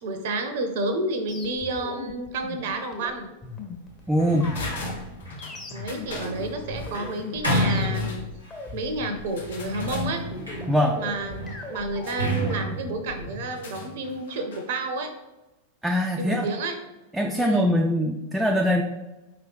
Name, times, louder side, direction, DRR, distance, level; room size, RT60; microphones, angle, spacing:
voice 1, 0.0-3.3 5.7-8.2 8.7-10.2 10.9-15.1 16.2-16.8 17.4-17.7, right 2 dB, 55° right, 7 dB, 0.6 m, -30 dB
sound 1, 1.3-13.5, left 3 dB, 20° left, 0.9 m, -39 dB
Sliding door, 4.1-8.6 9.3-14.1, equal, 90° left, 1.2 m, -31 dB
voice 2, 4.1-4.5 10.7-11.0 15.8-16.5 17.1-18.8, equal, 5° right, 1 dB, 0.3 m, -22 dB
sound 2, 4.5-5.6 5.9-6.4 7.3-8.2 9.4-10.1 12.0-12.4 13.4-14.7 15.0-15.1, left 3 dB, 65° left, 0.8 m, -41 dB
4.9 x 3.0 x 3.3 m, 1.0 s
figure-of-eight pair, 90°, 0 cm